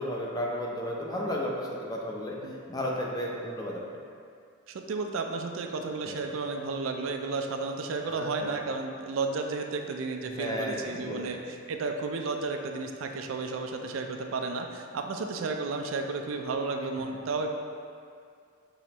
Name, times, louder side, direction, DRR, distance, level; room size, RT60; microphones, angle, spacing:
voice 1, 0.0-2.4 2.7-3.8 6.0-6.2 8.2-8.3 10.2-11.2, equal, 20° left, -3 dB, 0.5 m, -33 dB
voice 2, 4.7-17.6, right 3 dB, 85° right, 4 dB, 0.4 m, -33 dB
6.0 x 3.1 x 2.9 m, 2.3 s
head